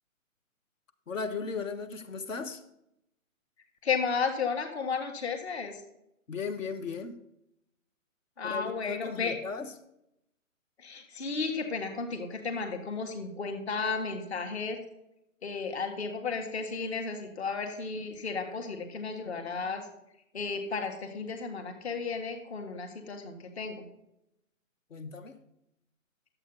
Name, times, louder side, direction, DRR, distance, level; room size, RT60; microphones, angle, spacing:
voice 1, 1.1-2.6 6.3-7.2 8.4-9.7 24.9-25.4, left 5 dB, 65° left, 1.3 m, -36 dB
voice 2, 3.8-5.8 8.4-9.4 10.8-14.8 15.4-19.9 20.3-23.9, left 5 dB, 50° left, 1.7 m, -33 dB
10.5 x 8.0 x 3.9 m
hypercardioid pair, 170°, 41 cm